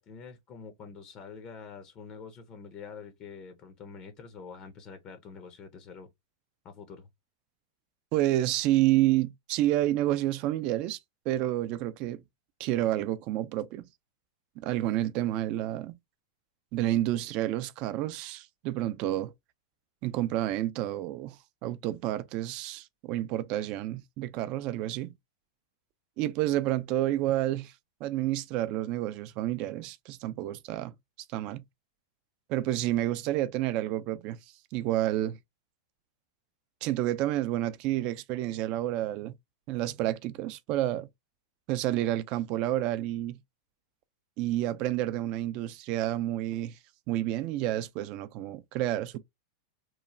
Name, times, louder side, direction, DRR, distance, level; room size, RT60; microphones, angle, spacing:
voice 1, 0.0-6.1 6.6-7.1, left 5 dB, 35° left, 0.5 m, -46 dB
voice 2, 8.1-11.0 11.3-12.2 12.6-13.8 14.6-15.9 16.7-19.3 20.0-21.4 21.6-25.1 26.2-27.7 28.0-30.9 31.3-31.6 32.5-34.4 34.7-35.4 36.8-39.3 39.7-41.1 41.7-43.4 44.4-46.7 47.1-49.2, right 14 dB, 45° right, 0.3 m, -29 dB
3.0 x 2.0 x 2.5 m
hypercardioid pair, 120°, 2 cm